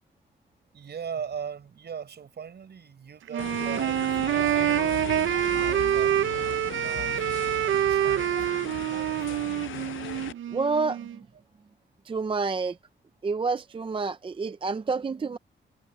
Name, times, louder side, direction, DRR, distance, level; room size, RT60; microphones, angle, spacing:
voice 1, 0.7-4.8 5.5-9.5, right 7 dB, 60° right, 4.9 m, -40 dB
Wind instrument woodwind instrument, 3.3-11.2, right 12 dB, 90° right, 0.5 m, -26 dB
sound 1, 3.4-10.3, left 12 dB, 90° left, 0.5 m, -38 dB
voice 2, 10.5-11.1 12.1-12.8 13.2-15.4, right 4 dB, 25° right, 0.5 m, -28 dB
wide cardioid pair, 130°, 20 cm